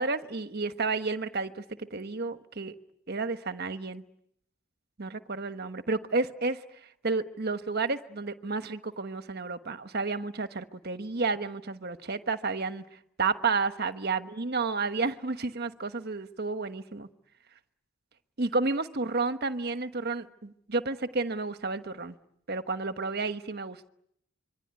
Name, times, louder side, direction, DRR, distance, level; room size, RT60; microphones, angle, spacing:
voice 1, 0.0-2.7 3.1-4.0 5.0-6.6 7.0-12.8 13.2-17.1 18.4-22.2 22.5-23.9, right 3 dB, 50° right, 10 dB, 1.2 m, -31 dB
26.0 x 23.0 x 9.6 m, 0.77 s
head